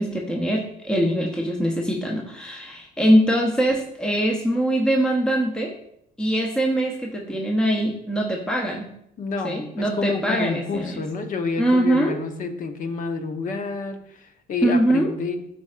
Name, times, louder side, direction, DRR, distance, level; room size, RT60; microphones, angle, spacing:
voice 1, 0.0-5.7 6.2-8.9 9.4-11.0 11.6-12.2 14.6-15.1, right 1 dB, 5° left, 0 dB, 0.8 m, -22 dB
voice 2, 9.2-15.4, left 4 dB, 50° left, 7 dB, 1.0 m, -29 dB
12.5 x 4.3 x 2.5 m, 0.75 s
cardioid pair, 110°, 17 cm